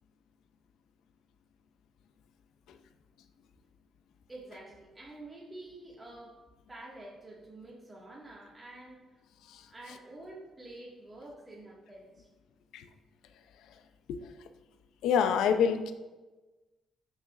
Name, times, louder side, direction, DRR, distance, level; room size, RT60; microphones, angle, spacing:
voice 1, 4.3-6.4 6.7-9.2 9.7-12.3, right 2 dB, 15° right, -5 dB, 2.0 m, -48 dB
voice 2, 15.0-15.9, left 7 dB, 85° left, 9 dB, 0.6 m, -27 dB
14.5 x 6.4 x 2.6 m, 1.2 s
cardioid pair, 90°, 0 cm